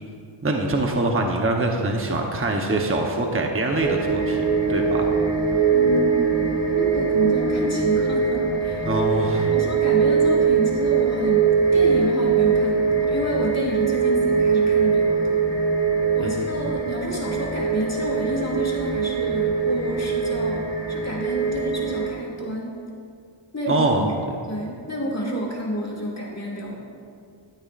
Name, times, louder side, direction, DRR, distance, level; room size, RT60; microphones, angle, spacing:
voice 1, 0.4-4.4 4.7-5.1 5.5-5.6 8.9-9.5 16.2-16.5 23.7-24.1, right 2 dB, 25° right, 1 dB, 0.9 m, -24 dB
sound 1, 3.8-22.1, right 5 dB, 55° right, 2.5 m, -22 dB
voice 2, 5.7-8.9 9.4-15.5 16.1-22.8 23.5-24.1 24.5-26.8, equal, 30° left, -4 dB, 2.1 m, -29 dB
12.5 x 12.0 x 2.5 m, 2.4 s
wide cardioid pair, 65°, 49 cm